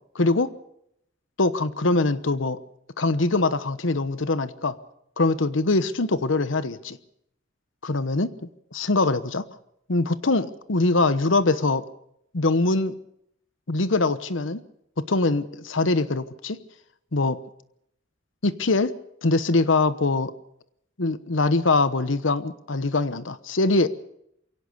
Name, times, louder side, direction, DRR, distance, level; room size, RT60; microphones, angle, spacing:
voice 1, 0.1-0.5 1.4-2.6 3.0-4.7 5.2-7.0 7.8-8.3 8.7-9.4 9.9-11.8 12.3-12.9 13.7-14.6 15.1-16.6 17.1-17.4 18.4-18.9 19.2-20.3 21.0-23.9, left 3 dB, 80° left, 13 dB, 1.1 m, -23 dB
23.0 x 17.0 x 6.9 m, 0.75 s
head